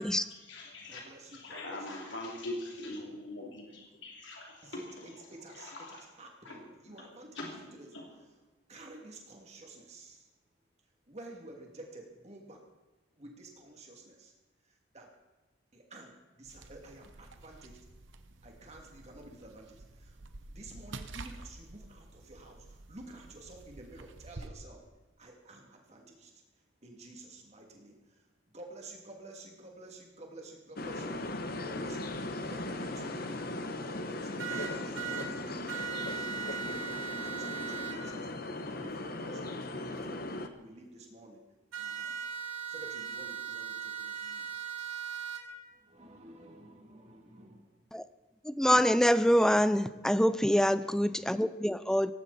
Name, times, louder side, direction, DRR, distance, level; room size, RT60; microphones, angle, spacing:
voice 1, 0.3-1.0 1.3-5.3 5.5-6.0 6.4-6.6 6.9-7.1 7.3-7.6 7.9-8.0, left 2 dB, 65° left, -1 dB, 3.2 m, -42 dB
voice 2, 0.9-2.0 4.6-7.9 8.7-10.3 11.1-12.6 13.2-14.3 14.6-15.1 15.7-17.8 18.4-24.8 25.2-26.4 26.8-31.2 31.6-33.3 33.7-36.8 37.1-40.3 40.6-41.4 41.8-42.2 42.7-44.5 45.7-47.7 49.6-50.0, right 1 dB, 35° right, 1 dB, 2.7 m, -51 dB
sound 1, 16.4-24.5, right 2 dB, 65° right, 1.0 m, -49 dB
sound 2, 30.8-40.5, left 2 dB, 45° left, 1.1 m, -38 dB
sound 3, 34.4-35.3 35.7-38.0 41.7-45.4, right 8 dB, 85° right, 2.6 m, -38 dB
voice 3, 48.4-52.1, equal, 5° left, 14 dB, 0.4 m, -25 dB
18.0 x 15.5 x 4.3 m, 1.2 s
head